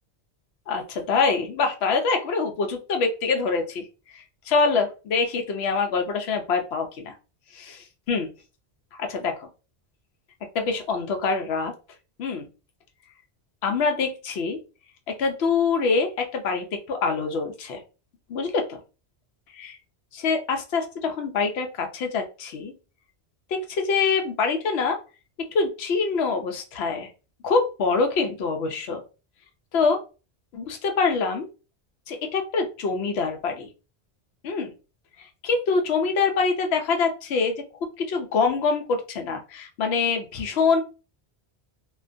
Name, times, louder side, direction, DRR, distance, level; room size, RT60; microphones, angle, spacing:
voice 1, 0.7-3.9 4.1-7.1 7.5-8.3 9.0-9.5 10.5-11.7 12.2-12.5 13.6-14.6 15.1-17.8 18.3-18.8 19.5-19.8 20.1-22.7 23.5-25.0 25.5-27.1 27.4-29.0 29.7-30.0 30.5-31.5 32.1-33.7 34.4-34.7 35.2-37.6 38.0-40.8, left 4 dB, 75° left, 4 dB, 0.8 m, -25 dB
2.4 x 2.2 x 2.5 m, 0.32 s
omnidirectional pair, 1.1 m